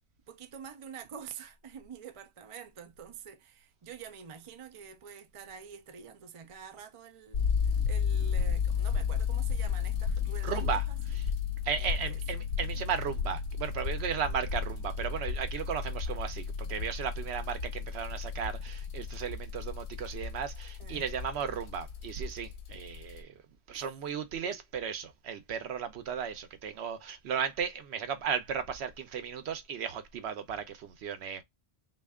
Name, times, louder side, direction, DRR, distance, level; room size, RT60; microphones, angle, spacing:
voice 1, 0.3-11.2 11.8-12.2 20.8-21.0 24.4-24.6, right 7 dB, 45° right, 0.5 m, -47 dB
sound 1, 7.3-23.2, left 6 dB, 80° left, 0.9 m, -33 dB
voice 2, 10.4-10.8 11.1-11.2 11.6-23.3 23.7-31.4, right 7 dB, 70° right, 0.9 m, -35 dB
3.2 x 2.5 x 3.4 m
omnidirectional pair, 1.1 m